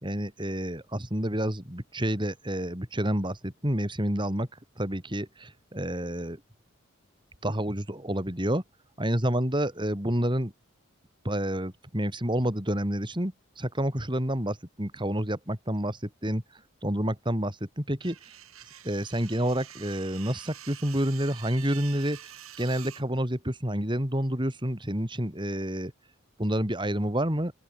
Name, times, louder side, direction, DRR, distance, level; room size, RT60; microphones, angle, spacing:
voice 1, 0.0-4.5 4.8-6.4 7.4-8.6 9.0-10.5 11.2-16.4 16.8-18.2 18.8-25.9 26.4-27.5, right 1 dB, 20° right, 4.0 m, -29 dB
sound 1, 18.0-23.0, right 11 dB, 80° right, 7.4 m, -47 dB
open air
head